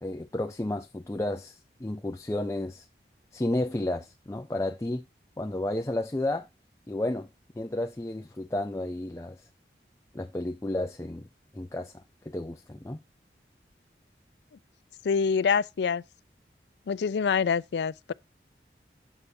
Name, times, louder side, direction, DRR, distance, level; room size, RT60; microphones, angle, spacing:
voice 1, 0.0-2.9 3.3-5.0 5.4-6.5 6.9-7.3 7.6-9.5 10.1-11.3 11.5-13.0, left 1 dB, 15° left, 0.4 m, -32 dB
voice 2, 15.0-16.0 16.9-18.1, left 6 dB, 80° left, 0.4 m, -26 dB
8.0 x 6.9 x 2.7 m
head